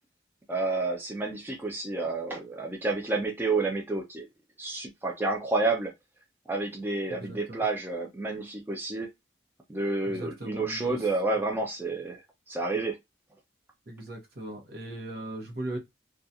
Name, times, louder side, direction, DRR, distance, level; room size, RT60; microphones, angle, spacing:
voice 1, 0.5-4.3 4.6-5.9 6.5-9.1 9.7-12.2 12.5-13.0, right 3 dB, 10° right, 0.3 m, -30 dB
voice 2, 7.2-7.6 10.1-11.1 13.9-15.8, right 1 dB, 60° right, 0.8 m, -38 dB
2.4 x 2.3 x 2.7 m
head